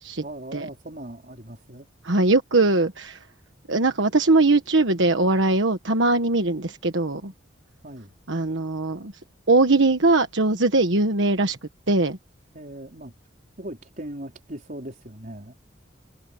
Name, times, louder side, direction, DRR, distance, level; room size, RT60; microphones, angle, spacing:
voice 1, 0.2-1.9 7.8-8.1 12.5-13.1 13.6-15.6, right 1 dB, 45° right, 4.5 m, -39 dB
voice 2, 2.0-3.2 3.7-7.3 8.3-9.1 9.5-11.6 11.9-12.2, right 2 dB, 75° right, 1.4 m, -21 dB
head